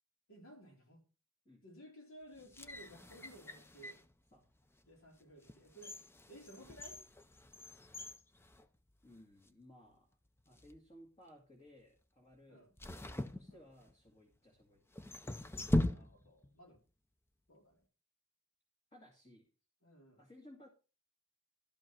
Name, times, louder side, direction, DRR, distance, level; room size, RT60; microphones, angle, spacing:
voice 1, 0.3-1.0 1.6-4.0 4.9-7.0 12.5-12.8 13.5-13.6 15.8-16.8 17.5-17.8 19.8-20.2, equal, 70° left, 3.8 m, -57 dB
sound 1, 2.4-4.1 4.7-4.9 5.4-9.2 9.5-9.6 10.4-10.8 12.8-14.1 14.9-16.5 16.7-16.8, left 1 dB, 10° left, 0.5 m, -40 dB
voice 2, 9.0-10.2 10.5-12.7 13.0-14.8 18.9-19.5 20.2-20.7, left 1 dB, 30° left, 2.4 m, -60 dB
12.5 x 5.3 x 6.0 m
head